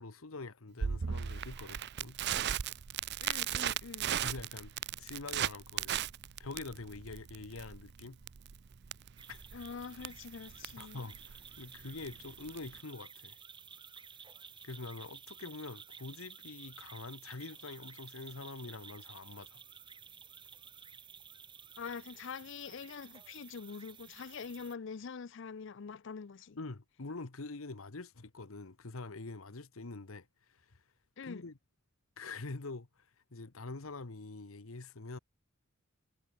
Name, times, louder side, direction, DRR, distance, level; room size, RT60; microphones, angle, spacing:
voice 1, 0.0-2.2 4.2-4.7 5.0-6.0 6.4-8.2 9.3-9.7 10.8-13.4 14.6-19.6 26.6-30.8 31.2-31.6 32.2-35.2, left 3 dB, 90° left, 1.2 m, -45 dB
Crackle, 0.8-12.8, right 9 dB, 55° right, 0.5 m, -37 dB
voice 2, 3.2-4.1 9.5-11.1 21.8-26.6 31.2-31.5, left 5 dB, 60° left, 0.5 m, -45 dB
sound 1, 9.2-24.8, right 6 dB, 25° right, 1.9 m, -53 dB
head